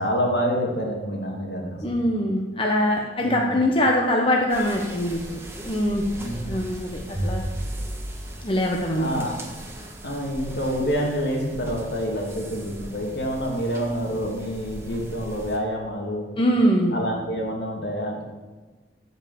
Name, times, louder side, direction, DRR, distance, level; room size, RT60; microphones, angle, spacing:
voice 1, 0.0-2.0 3.2-3.6 6.2-6.5 9.0-9.3 10.0-16.3 16.9-18.2, equal, 65° left, 0 dB, 2.6 m, -27 dB
voice 2, 1.8-6.0 6.5-7.4 8.4-9.2 16.4-16.9, equal, 30° left, 0 dB, 1.0 m, -23 dB
sound 1, 4.5-15.6, right 1 dB, 15° right, 1.5 m, -36 dB
15.5 x 5.5 x 7.2 m, 1.3 s
head